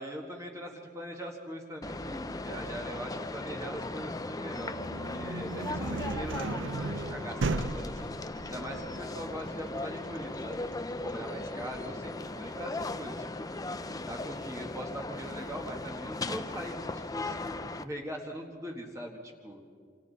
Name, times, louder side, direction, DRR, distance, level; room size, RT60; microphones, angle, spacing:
voice 1, 0.0-8.1 8.5-10.6 11.0-13.5 13.9-19.6, equal, 15° right, 0 dB, 1.6 m, -41 dB
sound 1, 1.8-17.8, left 2 dB, 20° left, 0.6 m, -38 dB
sound 2, 4.5-14.3, right 3 dB, 85° right, 0.7 m, -38 dB
27.5 x 27.0 x 4.1 m, 2.2 s
head